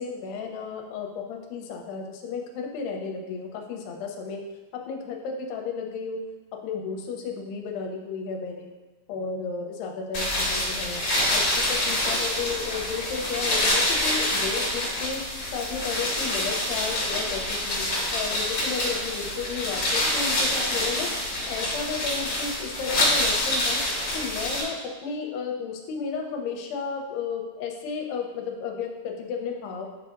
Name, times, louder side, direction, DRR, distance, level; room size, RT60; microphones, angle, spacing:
voice 1, 0.0-4.4 4.9-6.2 6.6-8.7 9.1-11.0 11.3-17.8 18.1-21.1 21.4-23.8 24.1-24.8 25.0-29.9, left 5 dB, 80° left, 2 dB, 2.6 m, -33 dB
sound 1, 10.1-24.6, left 1 dB, 40° left, 2.0 m, -26 dB
7.9 x 4.9 x 2.5 m, 1.2 s
omnidirectional pair, 5.0 m